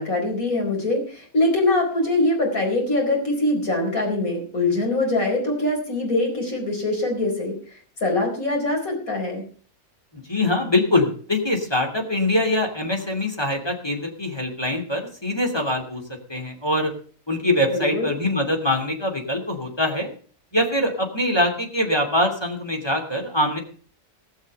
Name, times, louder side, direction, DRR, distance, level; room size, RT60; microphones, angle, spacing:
voice 1, 0.0-7.5 8.0-9.4 17.7-18.1, left 2 dB, 75° left, 1 dB, 5.0 m, -23 dB
voice 2, 10.1-16.0 16.3-16.9 17.3-20.1 20.5-23.6, left 1 dB, 15° left, 2 dB, 3.0 m, -23 dB
19.5 x 6.6 x 6.7 m, 0.43 s
omnidirectional pair, 1.5 m